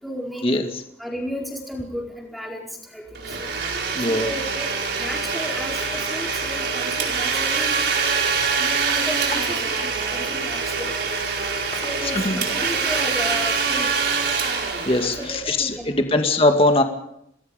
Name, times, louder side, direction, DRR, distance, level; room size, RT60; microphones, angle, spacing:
voice 1, 0.0-0.5 1.0-3.5 4.1-4.6 5.0-7.9 8.6-11.0 11.8-13.9 15.0-16.0, equal, ahead, -1 dB, 4.5 m, -34 dB
Domestic sounds home sounds, 3.1-15.7, right 5 dB, 70° right, 4.7 m, -25 dB
voice 2, 3.9-4.3 11.7-11.8 12.1-12.4 14.9-16.8, left 2 dB, 30° left, 5 dB, 2.1 m, -20 dB
28.5 x 19.5 x 5.2 m, 0.72 s
head